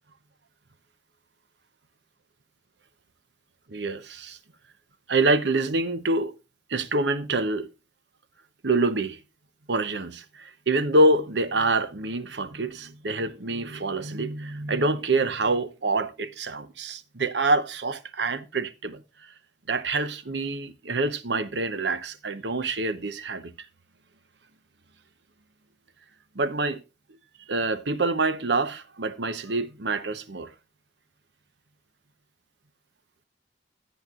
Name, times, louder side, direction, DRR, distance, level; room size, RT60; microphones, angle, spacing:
voice 1, 3.7-4.4 5.1-6.3 6.7-7.7 8.6-9.2 9.7-19.0 19.7-23.5 26.3-26.8 27.5-30.5, right 2 dB, 80° right, 0.9 m, -26 dB
17.0 x 7.3 x 2.5 m
head